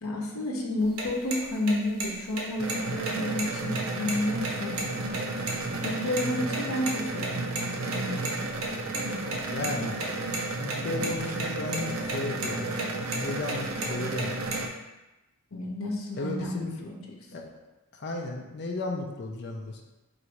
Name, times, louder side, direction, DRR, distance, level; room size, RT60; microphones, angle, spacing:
voice 1, 0.0-5.2 5.8-8.2 15.5-17.0, left 1 dB, 75° left, -1 dB, 0.8 m, -31 dB
sound 1, 0.8-5.9 6.2-6.3 6.5-6.6 6.9-7.0 7.2-7.3 7.5-7.6 7.9-9.0 9.3-9.7 10.0-10.8 11.0-11.5 11.7-12.2 12.4-12.5 12.8-13.2 13.5-14.7, right 3 dB, 85° right, 1.0 m, -33 dB
sound 2, 2.6-14.7, right 2 dB, 70° right, 0.5 m, -33 dB
voice 2, 9.5-10.0 10.6-12.8 13.1-14.3 16.2-16.7 17.3-17.5 17.9-19.8, left 2 dB, 50° left, 2 dB, 0.5 m, -34 dB
4.0 x 2.6 x 4.6 m, 1.0 s
head